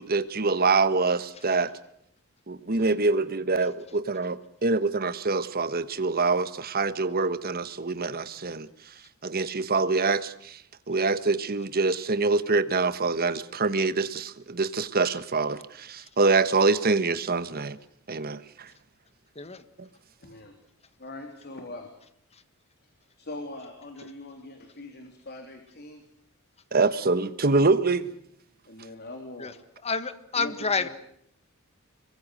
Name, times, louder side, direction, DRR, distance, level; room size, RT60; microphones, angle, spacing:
voice 1, 0.0-1.7 2.5-8.7 9.2-10.6 10.9-17.8 18.1-18.7 19.8-19.9 26.7-28.1, right 3 dB, 45° right, 13 dB, 1.3 m, -25 dB
voice 2, 20.2-20.5 21.0-21.9 22.8-22.9 23.2-26.0 28.6-29.6 30.3-30.9, left 2 dB, 50° left, 4 dB, 3.4 m, -41 dB
voice 3, 29.8-30.9, left 4 dB, 30° left, 12 dB, 1.6 m, -28 dB
26.5 x 23.0 x 6.5 m, 0.70 s
head